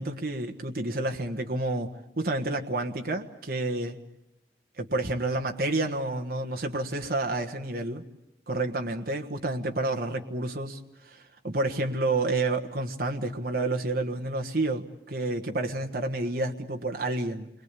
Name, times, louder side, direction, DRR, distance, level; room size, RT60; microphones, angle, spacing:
voice 1, 0.0-1.9 2.2-4.0 4.8-8.0 8.5-17.5, right 2 dB, 55° right, 3 dB, 1.5 m, -29 dB
28.5 x 23.0 x 8.4 m, 0.87 s
head